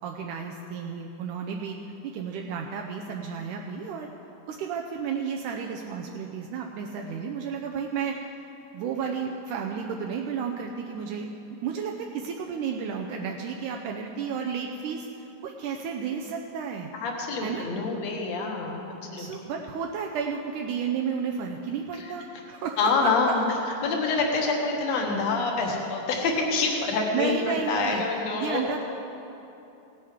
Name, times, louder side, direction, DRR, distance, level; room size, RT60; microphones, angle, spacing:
voice 1, 0.0-4.1 4.5-8.4 8.7-11.3 11.6-15.1 15.4-16.9 17.4-17.7 19.2-22.8 27.1-28.0 28.4-28.8, right 6 dB, 80° right, 1 dB, 2.0 m, -32 dB
voice 2, 16.9-19.5 22.0-22.1 22.8-23.5 23.8-28.6, left 4 dB, 60° left, 0 dB, 2.4 m, -26 dB
17.5 x 8.6 x 5.0 m, 2.8 s
omnidirectional pair, 3.9 m